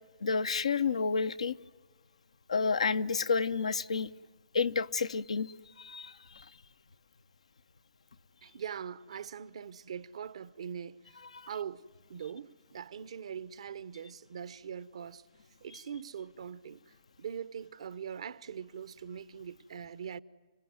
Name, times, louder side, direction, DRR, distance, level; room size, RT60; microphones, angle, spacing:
voice 1, 0.2-1.6 2.5-4.1 4.5-5.5 5.8-6.4 11.3-11.5, left 5 dB, 85° left, 0.8 m, -30 dB
voice 2, 8.4-11.0 11.5-11.8 12.1-15.2 15.6-16.8 17.2-20.2, right 8 dB, 70° right, 0.9 m, -42 dB
29.5 x 18.5 x 9.4 m
hypercardioid pair, 135°, 3 cm